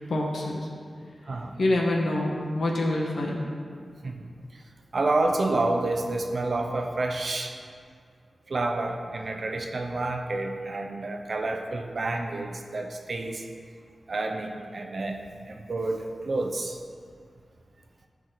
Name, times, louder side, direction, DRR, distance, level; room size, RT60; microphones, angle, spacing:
voice 1, 0.1-0.7 1.6-3.5, left 1 dB, 75° left, -1 dB, 1.5 m, -26 dB
voice 2, 4.0-4.6 4.9-7.6 8.5-13.4 14.1-15.2 15.5-16.8, right 2 dB, 60° right, 4 dB, 0.9 m, -29 dB
13.5 x 4.9 x 4.1 m, 2.1 s
cardioid pair, 60°, 0 cm